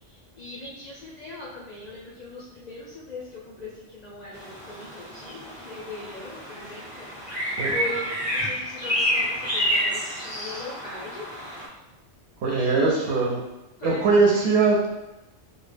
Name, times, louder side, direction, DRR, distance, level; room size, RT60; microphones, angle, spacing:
voice 1, 0.4-7.1 7.6-11.3 12.4-13.4 13.8-14.4, left 2 dB, 65° left, -6 dB, 0.4 m, -39 dB
sound 1, 4.3-11.7, equal, 35° right, 0.5 m, -29 dB
voice 2, 12.4-13.4 13.8-14.9, right 4 dB, 65° right, -3 dB, 0.8 m, -21 dB
2.2 x 2.1 x 3.2 m, 0.97 s
omnidirectional pair, 1.3 m